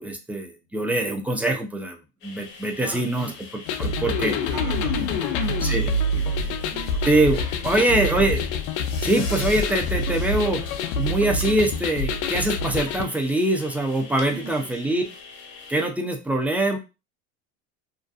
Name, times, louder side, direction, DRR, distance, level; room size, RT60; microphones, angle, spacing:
voice 1, 0.0-2.0 2.2-3.3 3.8-4.3 5.6-5.9 7.1-8.4 9.0-10.6 10.9-15.0 15.7-16.8, right 1 dB, 5° right, 3 dB, 0.4 m, -23 dB
sound 1, 2.2-15.9, left 4 dB, 35° left, 0.7 m, -42 dB
voice 2, 2.8-3.4 3.9-7.3 7.6-8.3 14.2-15.1, right 5 dB, 70° right, 0 dB, 1.1 m, -39 dB
sound 2, 3.7-13.0, left 2 dB, 75° left, 0.5 m, -26 dB
2.5 x 2.2 x 2.4 m, 0.28 s
supercardioid pair, 105°, 33 cm